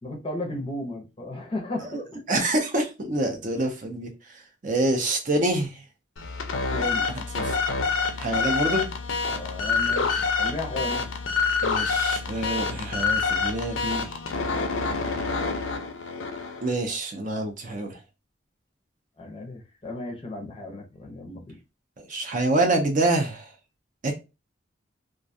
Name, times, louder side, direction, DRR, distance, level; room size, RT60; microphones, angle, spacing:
voice 1, 0.0-2.0 6.7-7.1 9.2-11.1 19.2-21.5, left 1 dB, 25° left, 0.5 m, -35 dB
voice 2, 2.3-5.8 7.1-7.6 8.2-8.9 11.6-14.1 16.6-18.0 22.0-23.5 24.0-24.1, right 2 dB, 40° right, 0.5 m, -26 dB
sound 1, 6.2-16.7, left 4 dB, 80° left, 0.5 m, -27 dB
2.4 x 2.2 x 2.6 m
head